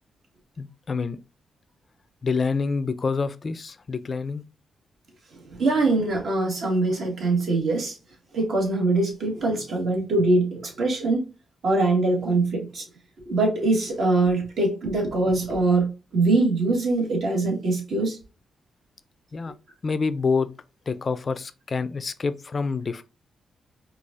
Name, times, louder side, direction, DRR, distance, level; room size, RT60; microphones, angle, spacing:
voice 1, 0.6-1.2 2.2-4.4 19.3-19.5 19.8-20.5 20.9-23.1, left 4 dB, 45° left, 0.3 m, -27 dB
voice 2, 5.3-8.0 8.3-11.3 11.6-12.8 13.2-18.2, right 2 dB, 70° right, 1.5 m, -23 dB
4.7 x 2.4 x 2.5 m
cardioid pair, 75°, 0 cm